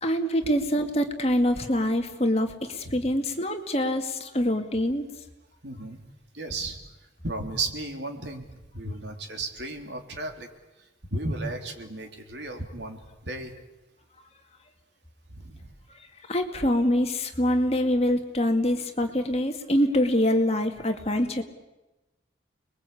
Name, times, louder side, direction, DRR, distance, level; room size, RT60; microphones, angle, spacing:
voice 1, 0.0-5.0 16.3-21.4, left 1 dB, 35° left, 5 dB, 2.2 m, -25 dB
voice 2, 5.6-6.0 6.3-6.8 7.2-8.5 8.7-10.5 11.1-13.5 15.3-15.7, right 2 dB, 70° right, 4 dB, 3.5 m, -34 dB
30.0 x 21.5 x 8.6 m, 1.0 s
head